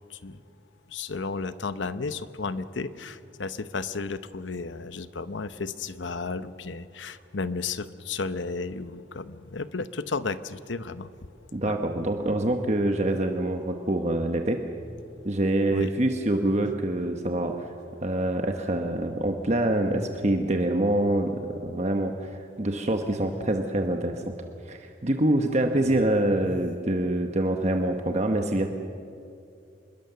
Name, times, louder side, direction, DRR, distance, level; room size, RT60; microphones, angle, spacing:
voice 1, 0.1-0.4 0.9-11.1 11.6-11.8 15.7-15.9 25.8-26.0, left 4 dB, 85° left, 13 dB, 0.9 m, -33 dB
voice 2, 11.5-14.6 15.2-17.7 18.0-24.3 24.7-28.7, right 1 dB, 40° right, 4 dB, 1.1 m, -25 dB
26.0 x 21.5 x 6.9 m, 2.5 s
head